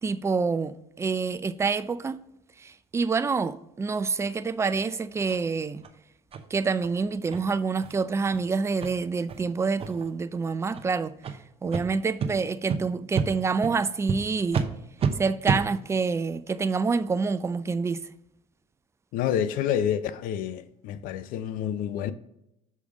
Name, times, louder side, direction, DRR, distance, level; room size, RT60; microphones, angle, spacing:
voice 1, 0.0-2.2 2.6-5.8 6.5-11.2 11.6-14.7 15.2-18.0, right 4 dB, 15° right, 0.4 m, -27 dB
sound 1, 5.3-5.4 5.8-5.9 6.3-6.4 6.8-6.9 7.3-7.4 7.8-7.9 8.3-8.4 8.8-8.9 9.3-9.4 9.8-10.1 10.7-10.8 11.2-11.3 11.7-11.8 12.2-12.3 12.7-12.8 13.1-13.3 13.6-13.7 14.1-14.2 14.5-14.7 15.0-15.1 15.4-15.6, right 6 dB, 35° right, 0.7 m, -28 dB
voice 2, 19.1-22.1, left 9 dB, 60° left, 0.5 m, -28 dB
6.3 x 3.5 x 4.8 m
hypercardioid pair, 75°, 16 cm